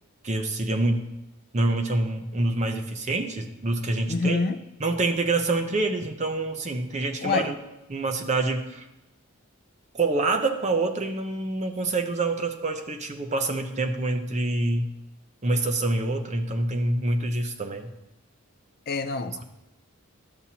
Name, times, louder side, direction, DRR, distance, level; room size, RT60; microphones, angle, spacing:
voice 1, 0.2-1.0 1.5-4.4 4.8-7.5 7.9-8.9 9.9-14.9 15.4-17.9, right 2 dB, 30° right, 0.7 m, -26 dB
voice 2, 4.1-4.6 7.2-7.5 18.9-19.4, left 3 dB, 45° left, 0.4 m, -26 dB
12.0 x 7.3 x 2.8 m
head